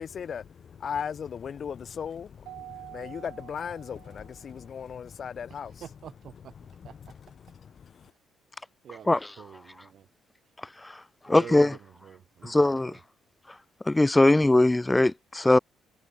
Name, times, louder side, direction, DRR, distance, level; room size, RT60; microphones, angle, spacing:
voice 1, 0.0-5.8 7.4-8.1, left 7 dB, 35° left, 0.8 m, -37 dB
Keyboard (musical), 2.4-4.7, right 15 dB, 85° right, 2.6 m, -47 dB
voice 2, 5.5-6.5 6.8-7.1 8.8-10.1 11.2-13.0, right 9 dB, 45° right, 6.6 m, -47 dB
voice 3, 11.3-11.7 12.4-12.9 13.9-15.6, left 2 dB, 10° left, 0.8 m, -21 dB
cardioid pair, 165°, 0 cm